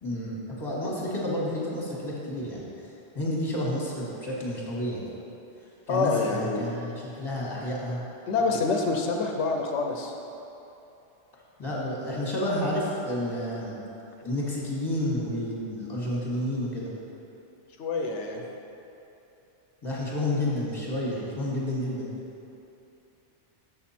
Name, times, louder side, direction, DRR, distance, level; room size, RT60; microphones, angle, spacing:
voice 1, 0.0-2.6 3.1-5.1 5.9-8.0 11.6-13.7 14.2-16.9 19.8-22.1, left 1 dB, 20° left, -5 dB, 1.4 m, -30 dB
voice 2, 5.9-6.6 8.3-10.1 17.8-18.4, left 4 dB, 85° left, 2 dB, 1.0 m, -26 dB
6.9 x 6.1 x 4.2 m, 2.9 s
omnidirectional pair, 1.2 m